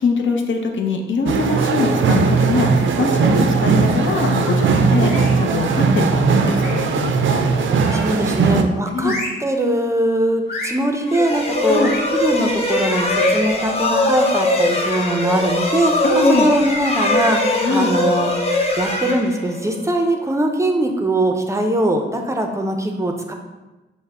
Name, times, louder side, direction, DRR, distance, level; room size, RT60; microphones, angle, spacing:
voice 1, 0.0-7.4 8.9-9.2 11.6-11.9 16.0-16.5 17.6-17.9, left 4 dB, 75° left, 3 dB, 0.6 m, -22 dB
sound 1, 1.3-8.6, right 4 dB, 85° right, 0.4 m, -18 dB
sound 2, 5.0-5.5 6.5-6.9 7.8-8.3 9.0-9.5 10.5-10.9 11.8-12.1 13.1-13.6, left 2 dB, 55° left, 1.3 m, -30 dB
voice 2, 7.9-9.1 9.4-18.5 18.8-23.3, right 1 dB, 15° right, 3 dB, 0.4 m, -21 dB
sound 3, 11.0-19.8, left 1 dB, 30° left, 0.6 m, -21 dB
5.5 x 2.1 x 4.7 m, 1.1 s
wide cardioid pair, 125°, 20 cm